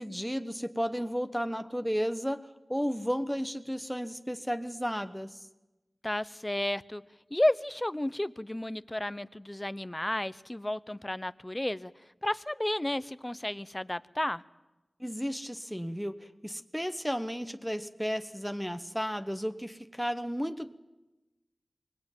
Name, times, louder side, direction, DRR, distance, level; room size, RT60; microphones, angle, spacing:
voice 1, 0.0-5.5 15.0-20.8, equal, ahead, 10 dB, 1.1 m, -33 dB
voice 2, 6.0-7.0 7.3-11.9 12.2-14.4, left 1 dB, 20° left, 15 dB, 0.8 m, -32 dB
24.5 x 20.5 x 9.1 m, 1.1 s
wide cardioid pair, 55°, 0 cm